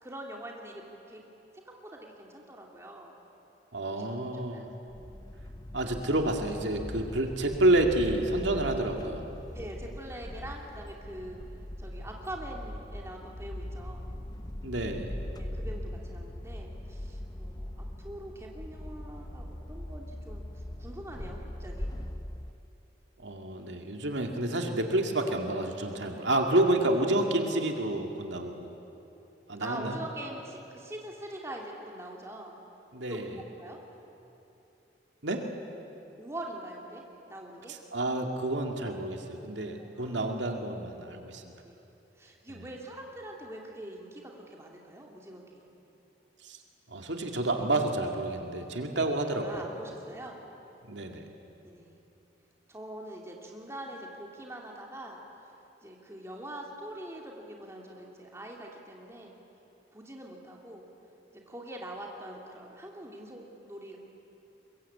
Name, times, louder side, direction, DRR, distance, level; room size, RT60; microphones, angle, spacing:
voice 1, 0.0-1.2 1.5-3.1 3.9-4.0 4.5-4.6 9.5-11.4 11.8-14.0 15.4-20.4 20.8-21.9 29.6-32.5 33.1-33.3 33.6-33.8 36.2-37.0 37.3-37.7 39.8-40.2 41.6-41.8 42.2-45.7 49.4-50.4 51.6-52.0 52.7-55.2 55.8-59.3 59.9-60.9 61.5-64.0, right 1 dB, 15° right, -1 dB, 2.6 m, -43 dB
voice 2, 3.7-4.7 5.7-9.3 14.6-15.1 23.2-28.7 29.5-30.0 32.9-33.4 35.2-35.4 37.7-41.4 42.5-42.7 46.4-46.6 46.9-49.6 50.9-51.2, right 1 dB, 85° right, 3 dB, 2.2 m, -29 dB
sound 1, 4.9-22.5, left 1 dB, 20° left, 0.7 m, -40 dB
22.5 x 22.0 x 8.5 m, 2.9 s
head